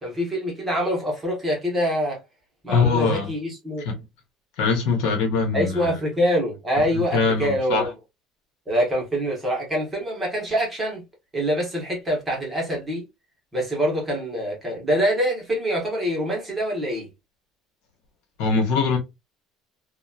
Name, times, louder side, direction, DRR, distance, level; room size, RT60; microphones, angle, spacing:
voice 1, 0.0-2.2 2.6-3.9 5.5-7.9 8.7-11.0 11.3-13.0 13.5-17.1, equal, 10° right, 1.0 m, -25 dB
voice 2, 2.7-3.3 3.8-4.0 4.6-6.0 6.8-6.9 7.1-7.9 18.4-19.0, left 4 dB, 70° left, 0.9 m, -22 dB
2.9 x 2.2 x 2.3 m
cardioid pair, 180°, 0 cm